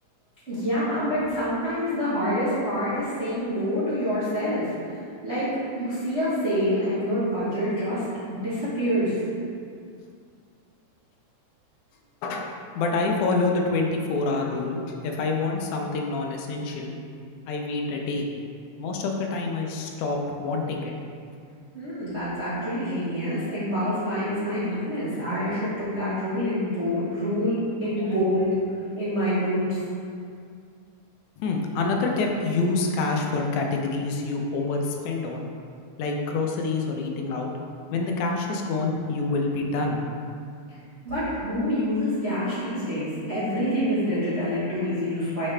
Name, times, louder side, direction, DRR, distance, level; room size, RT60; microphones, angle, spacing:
voice 1, 0.5-4.7 5.2-5.5 5.7-9.1 21.7-28.5 29.0-29.8 41.0-45.5, equal, 50° right, -12 dB, 0.7 m, -26 dB
voice 2, 12.8-16.9 17.5-18.3 18.8-20.9 28.0-28.2 31.4-35.4 36.0-37.5 37.9-40.0, left 3 dB, 80° left, 1 dB, 2.1 m, -27 dB
6.0 x 5.4 x 3.2 m, 2.3 s
omnidirectional pair, 3.4 m